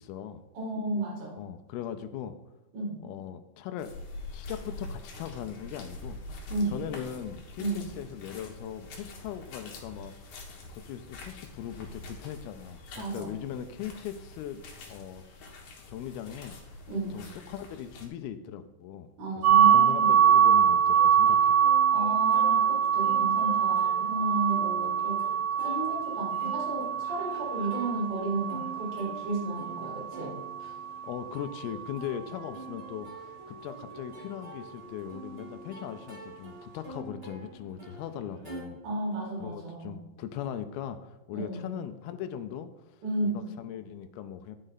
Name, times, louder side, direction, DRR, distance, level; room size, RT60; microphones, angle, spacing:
voice 1, 0.0-0.4 1.4-2.4 3.0-3.9 4.3-6.2 6.7-14.6 14.9-15.2 15.9-16.6 17.1-19.1 19.6-21.6 31.0-38.8 39.4-44.6, left 9 dB, 85° left, 9 dB, 2.4 m, -39 dB
voice 2, 0.5-1.4 2.7-3.0 6.5-6.8 7.6-7.8 13.0-13.3 16.9-17.2 19.2-20.2 21.9-25.2 25.5-30.3 38.8-40.0 41.3-41.7 43.0-43.4, right 2 dB, 65° right, -3 dB, 3.9 m, -33 dB
sound 1, 3.8-18.1, left 2 dB, 65° left, 2.3 m, -45 dB
sound 2, 19.4-31.2, right 9 dB, 85° right, 1.8 m, -24 dB
Plucked string instrument, 19.7-38.6, right 2 dB, 20° right, 2.1 m, -47 dB
10.0 x 5.3 x 3.9 m, 1.0 s
omnidirectional pair, 4.5 m